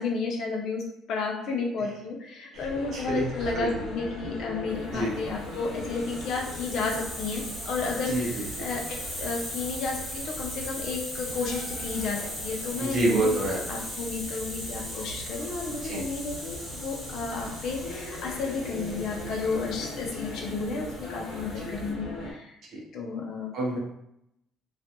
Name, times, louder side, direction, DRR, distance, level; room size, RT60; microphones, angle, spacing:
voice 1, 0.0-13.4 13.7-22.6 22.9-23.5, left 4 dB, 55° left, 0 dB, 0.5 m, -32 dB
sound 1, 2.5-22.3, left 1 dB, 80° left, 0.9 m, -40 dB
voice 2, 2.9-3.3 3.5-3.7 4.9-5.1 8.0-8.7 12.8-13.6 15.7-16.0 22.7-22.8 23.5-23.8, right 1 dB, 45° right, -3 dB, 0.7 m, -27 dB
Hiss, 5.3-21.9, equal, 15° left, 0.9 m, -39 dB
2.4 x 2.2 x 2.8 m, 0.79 s
cardioid pair, 165°, 0 cm